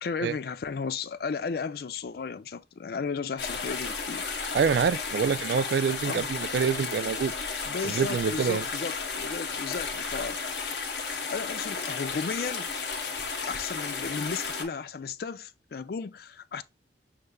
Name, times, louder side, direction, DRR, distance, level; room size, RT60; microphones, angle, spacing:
voice 1, 0.0-4.3 6.0-6.3 7.6-10.6 11.3-12.7 13.5-16.6, left 5 dB, 55° left, 0.4 m, -34 dB
sound 1, 3.4-14.6, left 4 dB, 80° left, 1.1 m, -33 dB
voice 2, 4.5-7.3 7.8-8.6, right 6 dB, 65° right, 0.3 m, -26 dB
6.6 x 3.3 x 2.2 m
head